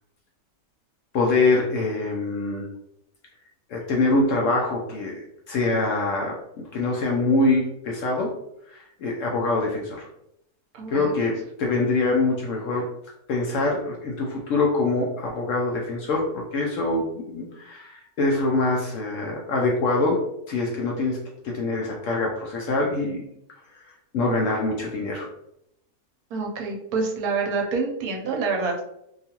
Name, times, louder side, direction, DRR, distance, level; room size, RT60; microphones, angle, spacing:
voice 1, 1.1-2.7 3.7-5.2 5.5-8.3 8.7-10.1 10.9-12.9 13.3-20.2 20.5-21.2 21.4-23.2 23.7-23.8 24.1-25.3, left 2 dB, 70° left, -1 dB, 0.8 m, -24 dB
voice 2, 10.7-11.1 26.3-28.8, right 4 dB, 75° right, 1 dB, 1.1 m, -27 dB
2.8 x 2.4 x 2.8 m, 0.79 s
omnidirectional pair, 1.6 m